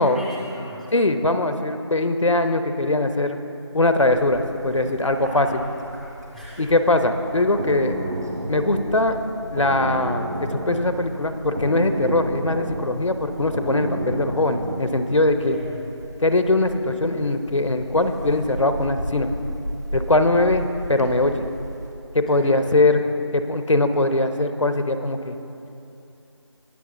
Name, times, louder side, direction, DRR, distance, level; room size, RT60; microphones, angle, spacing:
voice 1, 0.0-0.9 5.0-6.7 15.4-15.9 22.3-22.7, left 1 dB, ahead, -8 dB, 0.5 m, -40 dB
voice 2, 0.9-3.4 3.7-5.6 6.6-8.0 8.5-9.2 9.5-15.6 16.2-19.3 19.9-21.4 22.1-23.0 23.3-25.4, left 2 dB, 85° left, 8 dB, 0.8 m, -21 dB
Bird, 4.0-21.9, equal, 35° right, 1.1 m, -37 dB
sound 1, 7.3-15.0, right 2 dB, 50° right, 1.4 m, -31 dB
19.0 x 6.6 x 3.8 m, 2.8 s
figure-of-eight pair, 180°, 16 cm